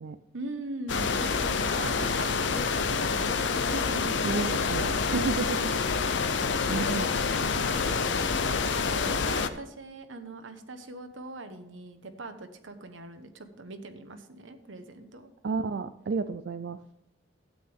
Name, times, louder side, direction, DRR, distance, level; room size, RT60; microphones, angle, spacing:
voice 1, 0.3-4.3 6.0-15.3, right 2 dB, 85° right, 8 dB, 1.1 m, -41 dB
sound 1, 0.9-9.5, left 5 dB, 70° left, 0.7 m, -27 dB
voice 2, 4.2-5.7 6.7-7.1 15.4-16.8, right 4 dB, 65° right, 10 dB, 0.4 m, -31 dB
12.5 x 8.8 x 3.5 m, 0.82 s
head